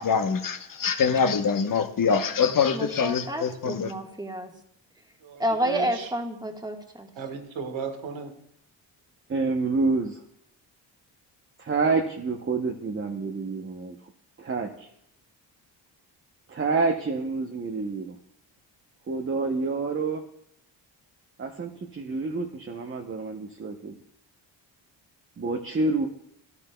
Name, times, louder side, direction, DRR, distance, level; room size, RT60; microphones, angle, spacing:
voice 1, 0.0-3.9, left 6 dB, 45° left, 8 dB, 1.0 m, -24 dB
voice 2, 2.7-4.5 5.4-7.1, right 1 dB, 10° right, 2 dB, 1.5 m, -30 dB
voice 3, 5.2-6.1 7.2-8.3, right 6 dB, 85° right, 5 dB, 1.5 m, -35 dB
voice 4, 9.3-10.2 11.6-14.0 14.4-14.9 16.5-18.2 19.1-20.2 21.4-23.9 25.4-26.1, right 3 dB, 30° right, 3 dB, 0.8 m, -28 dB
13.5 x 11.5 x 2.3 m, 0.74 s
cardioid pair, 85°, 45 cm